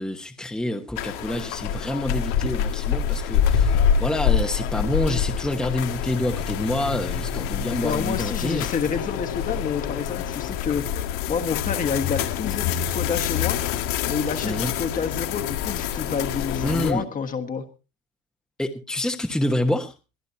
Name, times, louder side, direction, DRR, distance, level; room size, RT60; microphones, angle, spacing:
voice 1, 0.0-8.7 14.4-14.7 16.6-17.0 18.6-19.9, left 1 dB, ahead, 4 dB, 1.1 m, -27 dB
sound 1, 1.0-16.9, left 8 dB, 90° left, 2.1 m, -26 dB
voice 2, 7.8-13.6 14.0-17.6, left 6 dB, 25° left, 6 dB, 1.5 m, -29 dB
23.0 x 13.5 x 2.8 m, 0.31 s
cardioid pair, 165°, 31 cm